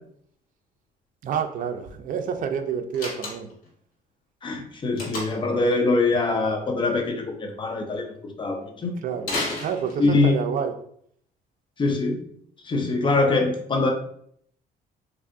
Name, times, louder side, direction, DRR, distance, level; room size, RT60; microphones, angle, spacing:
voice 1, 1.2-3.5 9.0-9.3 9.6-10.7, right 7 dB, 50° right, 7 dB, 0.5 m, -28 dB
Slam, 2.9-3.7 5.0-5.5 9.2-10.3, left 2 dB, 60° left, 1.3 m, -31 dB
voice 2, 4.4-8.9 10.0-10.3 11.8-12.2 12.7-13.9, left 3 dB, 30° left, 3 dB, 0.6 m, -23 dB
3.4 x 2.7 x 2.6 m, 0.65 s
cardioid pair, 110°, 17 cm